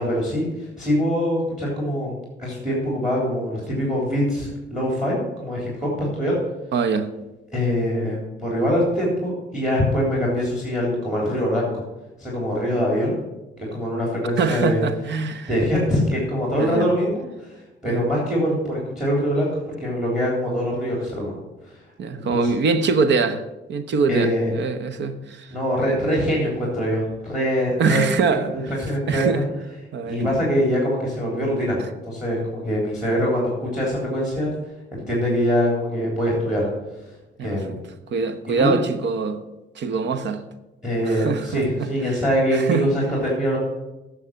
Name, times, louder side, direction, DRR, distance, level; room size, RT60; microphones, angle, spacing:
voice 1, 0.0-2.1 2.4-6.4 7.5-11.8 12.2-13.1 13.6-14.8 15.5-19.5 19.8-21.3 21.6-21.8 22.3-22.5 24.1-24.5 25.5-28.0 28.5-29.4 30.1-31.8 32.0-34.5 34.9-36.7 37.4-37.8 38.5-38.7 40.8-43.6, equal, ahead, 3.6 m, -23 dB
voice 2, 6.7-7.1 14.4-15.5 16.6-16.9 17.9-18.0 22.0-23.4 23.7-25.5 27.8-28.5 29.1-29.4 29.9-30.4 37.4-37.8 38.1-39.4 39.8-40.4 41.0-41.9 42.5-42.9, right 4 dB, 65° right, 1.0 m, -23 dB
9.7 x 6.5 x 7.5 m
cardioid pair, 90°, 20 cm